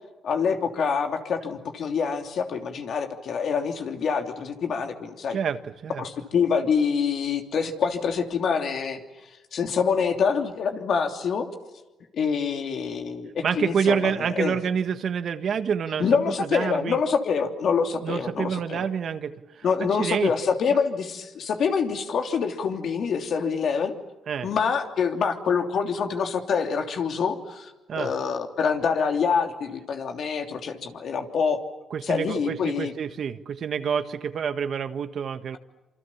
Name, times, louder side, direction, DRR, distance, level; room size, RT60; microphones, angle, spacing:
voice 1, 0.2-5.4 6.0-9.0 9.5-11.5 12.1-14.5 16.0-18.8 19.6-23.9 24.4-31.6 32.0-32.9, left 6 dB, 60° left, 4 dB, 3.1 m, -26 dB
voice 2, 5.3-6.1 13.4-17.0 18.0-20.3 24.3-24.5 27.9-28.1 31.9-35.6, right 7 dB, 60° right, 10 dB, 1.5 m, -28 dB
27.0 x 26.5 x 7.3 m, 1.1 s
cardioid pair, 90°, 0 cm